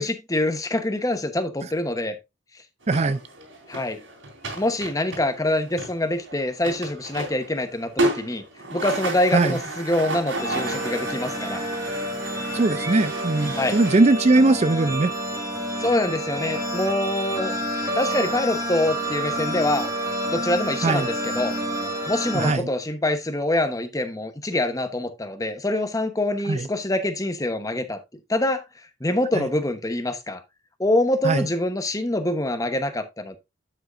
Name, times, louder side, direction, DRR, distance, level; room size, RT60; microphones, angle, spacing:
voice 1, 0.0-2.2 3.7-4.0 4.5-8.4 8.7-11.6 13.5-13.8 15.8-17.6 17.9-19.9 20.3-21.5 22.1-28.0 28.3-28.6 29.0-30.4 30.8-33.4, left 1 dB, 20° left, 1.0 m, -25 dB
sound 1, 2.8-14.0, right 2 dB, 90° right, 3.6 m, -32 dB
voice 2, 2.9-3.2 9.3-9.5 12.5-15.1 20.8-21.1 22.3-22.7 26.5-26.7 29.3-29.5 31.2-31.5, right 2 dB, 35° right, 0.4 m, -20 dB
sound 2, 10.4-22.5, equal, 15° right, 2.2 m, -29 dB
9.0 x 8.1 x 2.5 m
head